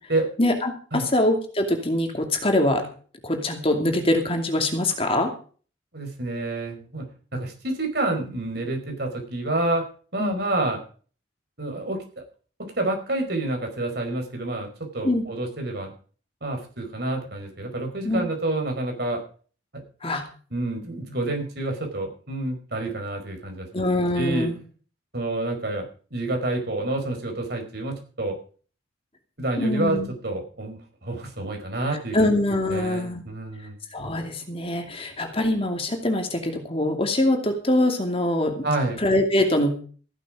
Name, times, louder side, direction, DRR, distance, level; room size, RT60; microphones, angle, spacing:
voice 1, 0.4-2.9 3.2-5.3 10.2-10.4 15.0-15.2 18.0-18.2 20.0-20.2 23.7-24.6 29.6-30.1 32.1-33.2 33.9-38.7 39.0-39.7, left 1 dB, 30° left, 5 dB, 2.5 m, -23 dB
voice 2, 5.9-9.8 10.1-10.8 11.6-12.0 12.8-15.9 16.4-19.2 20.5-23.8 24.1-24.5 25.1-28.4 29.4-32.3 32.7-33.8 38.6-39.0, right 2 dB, 55° right, 3 dB, 4.9 m, -28 dB
15.0 x 11.5 x 5.0 m, 0.41 s
head